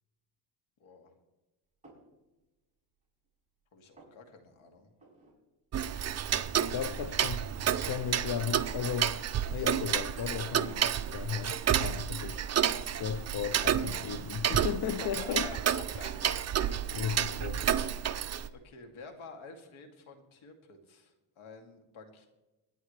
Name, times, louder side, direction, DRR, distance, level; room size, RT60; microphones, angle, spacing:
voice 1, 0.8-1.1 3.7-4.9 6.4-7.3 14.8-16.4 16.9-17.8 18.5-22.3, left 4 dB, 70° left, 2.7 m, -50 dB
sound 1, 1.8-2.1 2.7-3.3 3.6-4.2 5.0-5.4 5.7-5.8 6.0-6.6 6.9-7.0 7.6-8.0 8.6-8.8 9.7-9.8 10.3-11.6 12.0-12.2 13.0-13.4 14.4-15.0 15.4-16.4 16.9-17.2, right 2 dB, 15° right, 5.4 m, -59 dB
Tick-tock, 5.7-18.5, right 9 dB, 35° right, 0.6 m, -31 dB
sound 2, 6.3-11.5, right 5 dB, 65° right, 2.3 m, -52 dB
voice 2, 6.7-7.5 7.8-9.2 9.5-12.4 12.8-15.5 16.9-17.6, left 8 dB, 50° left, 0.7 m, -35 dB
24.5 x 10.0 x 3.3 m
cardioid pair, 135°, 49 cm